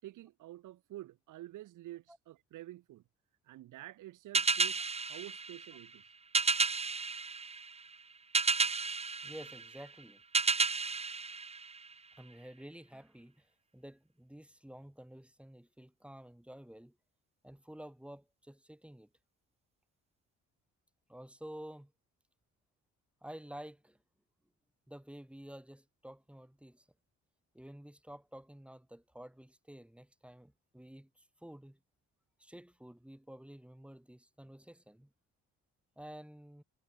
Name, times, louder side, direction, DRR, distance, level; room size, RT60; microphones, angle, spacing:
voice 1, 0.0-3.0 3.4-6.0, right 15 dB, 85° right, 7.7 m, -49 dB
sound 1, 4.3-12.2, right 4 dB, 20° right, 1.0 m, -33 dB
voice 2, 9.2-10.2 12.2-13.5 13.7-17.0 17.4-19.1 21.1-21.9 23.2-24.0 24.9-26.9 27.5-31.8 32.4-35.1 36.0-36.6, right 1 dB, 5° right, 3.9 m, -51 dB
cardioid pair, 90°, 30 cm